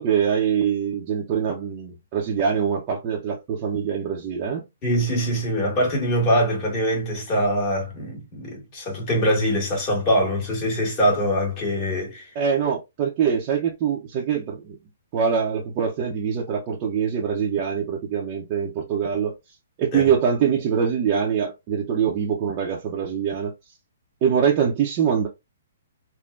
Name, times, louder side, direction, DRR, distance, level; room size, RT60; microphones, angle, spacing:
voice 1, 0.0-4.7 12.3-14.8 15.1-19.4 19.8-23.5 24.2-25.3, right 7 dB, 35° right, 0.7 m, -24 dB
voice 2, 4.8-12.3 19.9-20.0, equal, 30° left, 1.7 m, -23 dB
3.5 x 2.2 x 2.5 m
hypercardioid pair, 135°, 0 cm